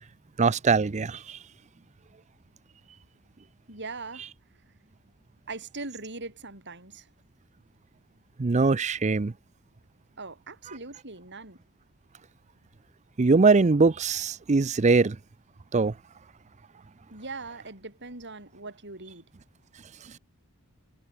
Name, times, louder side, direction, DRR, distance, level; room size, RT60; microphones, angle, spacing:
voice 1, 0.4-1.4 8.4-9.3 13.2-15.2 15.7-15.9, right 4 dB, 30° right, 0.5 m, -22 dB
voice 2, 3.7-4.3 5.5-7.1 10.2-11.6 17.1-19.2, right 3 dB, 50° right, 7.8 m, -40 dB
head